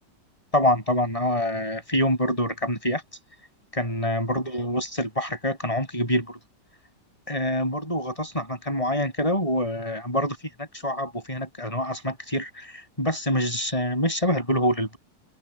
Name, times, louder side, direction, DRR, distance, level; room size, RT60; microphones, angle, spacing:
voice 1, 0.5-3.0 3.7-6.4 7.3-12.7 13.0-15.0, equal, 15° left, 6.6 m, -26 dB
omnidirectional pair, 2.0 m